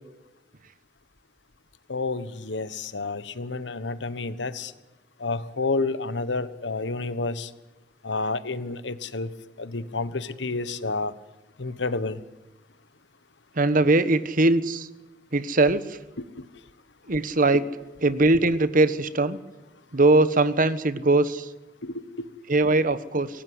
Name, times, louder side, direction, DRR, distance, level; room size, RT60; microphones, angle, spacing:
voice 1, 1.9-4.7 5.2-7.5 8.0-9.3 9.6-11.1 11.6-12.2 16.2-16.5 17.5-17.6 21.8-22.3, left 3 dB, 85° left, 14 dB, 1.3 m, -30 dB
voice 2, 13.6-14.9 15.3-15.8 17.1-17.6 18.0-19.4 19.9-21.4 22.5-23.3, right 2 dB, 50° right, 14 dB, 1.2 m, -21 dB
24.0 x 17.5 x 9.5 m, 1.0 s
head